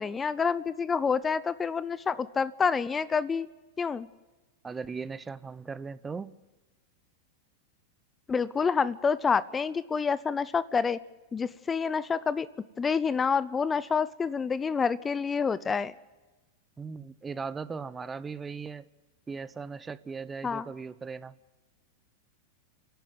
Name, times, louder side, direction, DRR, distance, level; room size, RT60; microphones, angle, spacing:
voice 1, 0.0-3.5 3.8-4.1 8.3-11.0 11.3-12.5 12.8-15.9 20.4-20.7, left 5 dB, 20° left, 18 dB, 0.7 m, -28 dB
voice 2, 4.6-6.3 16.8-18.8 19.3-21.3, right 5 dB, 20° right, 16 dB, 0.8 m, -38 dB
28.0 x 11.5 x 9.4 m, 1.2 s
hypercardioid pair, 105°, 0 cm